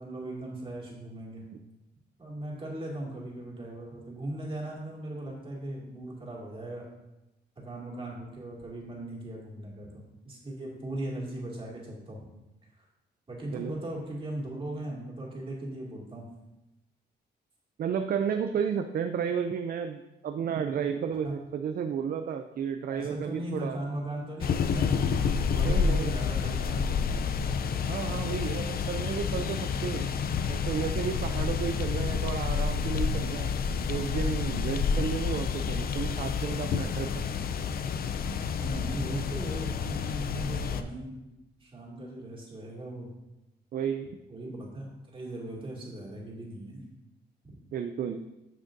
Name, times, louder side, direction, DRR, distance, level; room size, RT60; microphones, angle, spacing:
voice 1, 0.0-1.4 2.2-6.9 7.6-9.9 10.2-12.3 12.8-12.9 13.3-16.3 21.1-21.3 22.9-25.1 25.5-27.2 38.5-43.1 44.3-46.8 47.4-47.6, right 1 dB, 30° right, -3 dB, 2.2 m, -38 dB
voice 2, 17.8-23.8 25.6-26.1 27.9-30.1 30.5-33.5 33.9-37.2 43.7-44.1 47.7-48.2, right 7 dB, 55° right, 7 dB, 0.4 m, -32 dB
sound 1, 24.4-40.8, left 6 dB, 55° left, 0.5 m, -29 dB
10.0 x 6.2 x 2.6 m, 0.97 s
cardioid pair, 105°, 19 cm